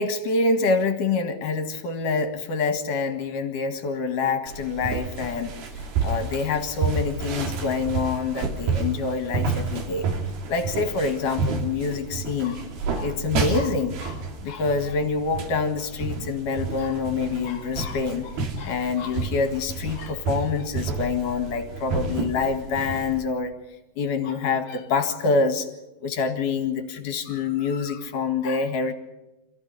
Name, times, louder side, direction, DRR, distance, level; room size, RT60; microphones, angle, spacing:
voice 1, 0.0-5.6 6.0-10.1 10.5-12.6 12.9-23.5 24.0-25.7 26.0-28.9, left 4 dB, 60° left, 7 dB, 3.2 m, -26 dB
sound 1, 4.5-23.2, right 4 dB, 70° right, 4.4 m, -30 dB
27.5 x 15.5 x 9.9 m, 0.98 s
omnidirectional pair, 4.6 m